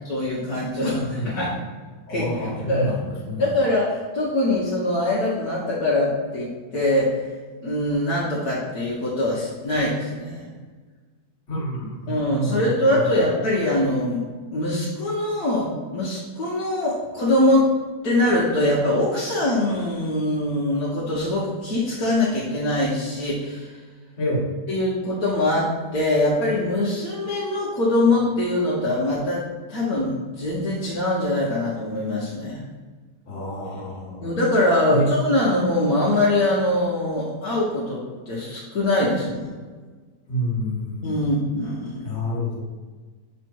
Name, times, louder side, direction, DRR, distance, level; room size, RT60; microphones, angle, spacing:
voice 1, 0.0-1.5 2.1-3.0 3.4-7.2 7.6-10.5 12.1-14.2 14.5-17.7 18.0-23.8 24.7-29.4 29.7-32.6 34.2-39.5 41.0-42.0, left 1 dB, 65° left, -6 dB, 1.5 m, -23 dB
voice 2, 0.9-1.4 2.1-2.9 3.2-3.4 11.5-13.1 24.2-24.5 33.3-34.2 34.9-35.1 40.3-41.1 42.0-42.6, equal, 45° left, -4 dB, 1.8 m, -28 dB
7.1 x 3.3 x 4.5 m, 1.4 s
omnidirectional pair, 1.8 m